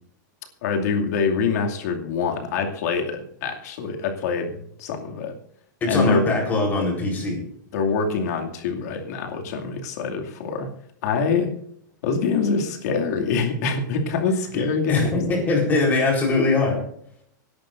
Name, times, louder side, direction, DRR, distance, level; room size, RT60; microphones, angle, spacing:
voice 1, 0.6-5.3 5.9-6.3 7.7-10.7 11.0-11.5 12.0-15.1, left 5 dB, 60° left, 2 dB, 2.5 m, -25 dB
voice 2, 5.8-7.4 14.5-14.6 14.9-16.8, left 3 dB, 15° left, 0 dB, 4.2 m, -21 dB
25.0 x 11.5 x 2.6 m, 0.67 s
supercardioid pair, 170°, 10 cm